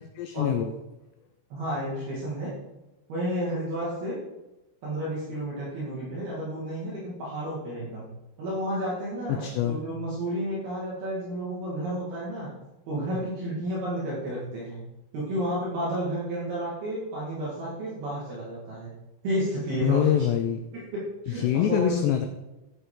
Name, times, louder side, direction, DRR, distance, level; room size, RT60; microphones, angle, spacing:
voice 1, 0.2-0.8 9.3-9.8 19.8-20.6 21.3-22.3, left 10 dB, 90° left, 7 dB, 2.4 m, -24 dB
voice 2, 1.5-2.5 3.1-4.2 4.8-8.0 8.4-12.5 12.9-14.8 15.1-18.9 19.2-20.3 20.7-22.0, right 1 dB, 60° right, -7 dB, 3.8 m, -31 dB
15.0 x 8.0 x 3.8 m, 1.0 s
omnidirectional pair, 5.7 m